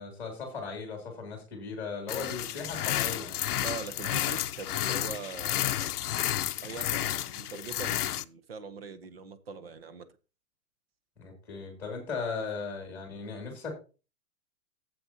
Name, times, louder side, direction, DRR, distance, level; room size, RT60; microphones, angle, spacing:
voice 1, 0.0-3.4 11.2-13.8, left 4 dB, 5° left, 2.5 m, -37 dB
sound 1, 2.1-8.2, left 12 dB, 80° left, 0.7 m, -31 dB
voice 2, 3.6-6.0 6.6-10.1, right 5 dB, 40° right, 0.9 m, -42 dB
13.0 x 7.9 x 2.8 m
hypercardioid pair, 180°, 45 cm